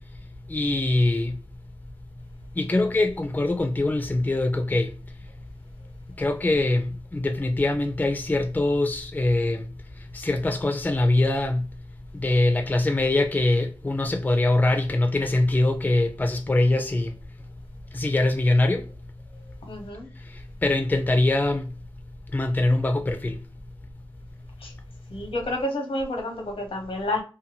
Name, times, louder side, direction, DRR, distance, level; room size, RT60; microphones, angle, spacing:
voice 1, 0.5-1.4 2.6-4.9 6.2-9.7 10.1-11.6 12.2-17.1 17.9-18.8 20.6-21.7 22.3-23.4, left 2 dB, 20° left, 0.4 m, -23 dB
voice 2, 19.7-20.1 24.6-24.7 25.1-27.2, left 1 dB, 90° left, 0.9 m, -29 dB
2.6 x 2.2 x 2.8 m
wide cardioid pair, 80°, 9 cm